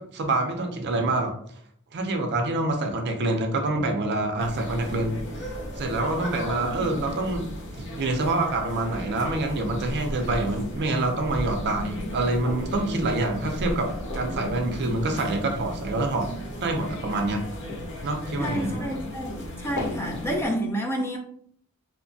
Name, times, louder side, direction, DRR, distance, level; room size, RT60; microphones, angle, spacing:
voice 1, 0.0-1.4 1.9-5.2 5.8-16.3 16.6-17.5 18.0-18.7, right 2 dB, 50° right, 4 dB, 0.5 m, -26 dB
sound 1, 4.4-20.5, left 1 dB, 55° left, 0.7 m, -35 dB
voice 2, 18.4-21.2, equal, 10° left, 0 dB, 0.4 m, -29 dB
2.8 x 2.1 x 2.6 m, 0.64 s
head